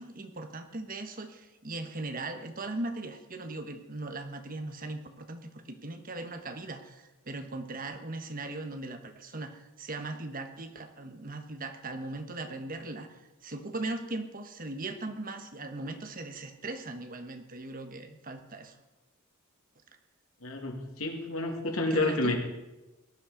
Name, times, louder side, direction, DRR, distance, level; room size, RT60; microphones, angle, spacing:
voice 1, 0.0-18.7 21.9-22.4, right 2 dB, 40° right, 7 dB, 1.3 m, -39 dB
voice 2, 20.4-22.4, left 2 dB, 90° left, 2 dB, 2.6 m, -30 dB
18.0 x 11.0 x 5.1 m, 1.0 s
head